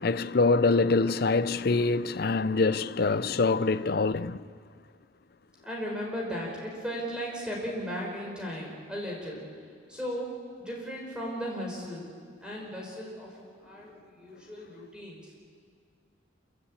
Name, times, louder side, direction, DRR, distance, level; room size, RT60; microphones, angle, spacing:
voice 1, 0.0-4.4, left 3 dB, 55° left, 0.6 m, -25 dB
voice 2, 5.6-9.5 9.9-10.3 10.6-12.1 12.4-15.3, equal, 5° right, 5.2 m, -36 dB
27.5 x 16.0 x 8.9 m
head